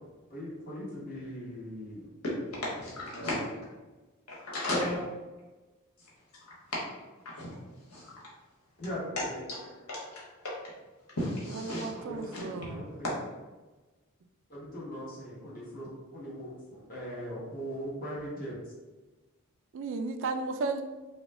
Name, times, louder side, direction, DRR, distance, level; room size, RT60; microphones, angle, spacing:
voice 1, 0.3-2.1 3.1-3.3 4.7-5.0 8.8-9.4 12.0-12.2 12.7-13.1 14.5-18.6, equal, 45° left, -6 dB, 1.3 m, -39 dB
voice 2, 2.2-3.4 4.3-4.8 6.7-6.8 7.2-7.5 7.9-8.1 9.5-9.6 9.9-10.5 11.2-12.0 12.3-12.5, left 1 dB, 85° left, -5 dB, 1.3 m, -35 dB
voice 3, 11.5-12.8 19.7-20.8, right 3 dB, 60° right, 7 dB, 0.3 m, -34 dB
4.2 x 2.2 x 3.3 m, 1.2 s
head